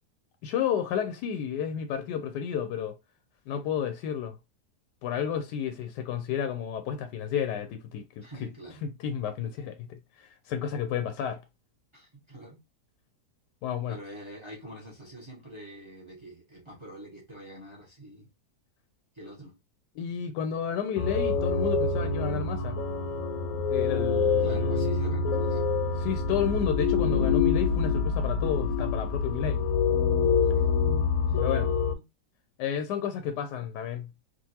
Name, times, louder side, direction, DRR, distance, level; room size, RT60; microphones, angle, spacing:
voice 1, 0.4-2.9 3.5-4.4 5.0-8.3 8.8-11.4 13.6-14.0 20.0-22.8 23.7-24.8 26.0-29.6 31.4-31.7 32.6-34.1, left 8 dB, 85° left, 1.2 m, -31 dB
voice 2, 8.2-8.8 11.9-12.6 13.9-18.3 19.1-19.5 24.4-25.6 30.4-30.7 31.3-31.4 31.9-32.0, right 1 dB, 20° right, 1.0 m, -44 dB
sound 1, 21.0-31.9, left 5 dB, 65° left, 1.0 m, -26 dB
3.7 x 2.5 x 2.7 m
omnidirectional pair, 1.8 m